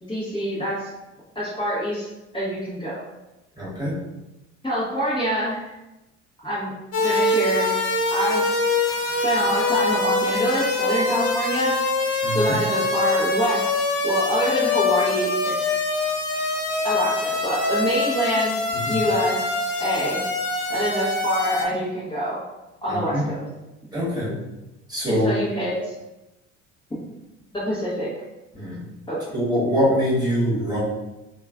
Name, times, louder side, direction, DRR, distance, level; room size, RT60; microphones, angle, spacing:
voice 1, 0.0-0.9 1.3-2.1 2.3-3.0 4.6-5.7 6.4-6.7 7.0-7.7 8.1-8.4 9.2-11.7 12.3-13.7 14.0-15.6 16.8-19.5 19.8-20.2 20.7-22.4 22.8-23.4 25.1-25.9 27.5-28.1 29.1-29.2, equal, 15° left, -10 dB, 1.0 m, -25 dB
voice 2, 3.6-4.0 12.2-12.6 18.9-19.0 22.9-23.2 23.9-24.4 24.9-25.3 28.5-28.8 29.3-30.8, equal, 10° right, -8 dB, 1.4 m, -23 dB
sound 1, 6.9-21.7, left 2 dB, 45° left, 0.7 m, -24 dB
3.0 x 2.3 x 2.4 m, 0.99 s
hypercardioid pair, 60°, 36 cm